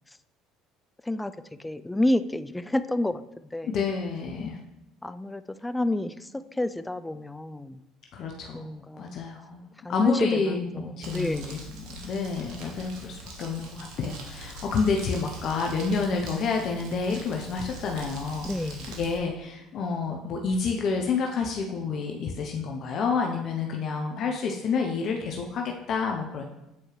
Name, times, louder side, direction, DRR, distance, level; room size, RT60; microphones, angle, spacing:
voice 1, 1.6-3.8 5.0-6.3 6.6-7.8 8.5-9.2 9.8-10.7 11.1-11.6 18.4-18.9, left 1 dB, 10° left, 12 dB, 0.4 m, -29 dB
voice 2, 3.7-4.6 8.1-8.7 9.0-9.6 9.9-26.4, left 5 dB, 55° left, 1 dB, 0.7 m, -29 dB
Crumpling crinkling, 11.0-19.2, right 1 dB, 65° right, 1.3 m, -43 dB
8.5 x 4.4 x 3.2 m, 0.89 s
hypercardioid pair, 60°, 0 cm